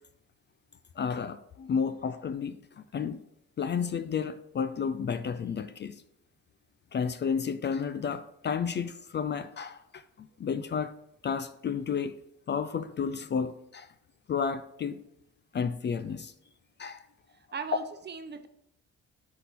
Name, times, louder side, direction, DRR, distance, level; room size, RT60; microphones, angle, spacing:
voice 1, 1.0-3.2 3.6-6.0 6.9-10.9 11.2-12.2 12.5-13.9 14.3-15.0 15.5-16.3 16.8-17.0, left 6 dB, 35° left, 0.4 m, -32 dB
voice 2, 17.3-18.5, right 6 dB, 35° right, 0.7 m, -39 dB
9.9 x 4.3 x 3.6 m
cardioid pair, 90°, 30 cm